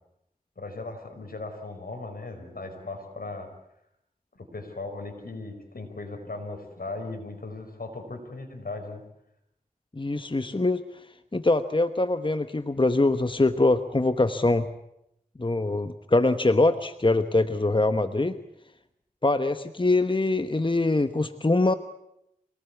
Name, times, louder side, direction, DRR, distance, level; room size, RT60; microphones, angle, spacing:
voice 1, 0.6-3.5 4.3-9.0, left 3 dB, 80° left, 5 dB, 5.2 m, -37 dB
voice 2, 9.9-10.9 11.3-14.7 15.4-18.4 19.2-21.7, left 2 dB, 35° left, 10 dB, 1.1 m, -23 dB
26.0 x 19.0 x 8.4 m, 0.81 s
wide cardioid pair, 40°, 15 cm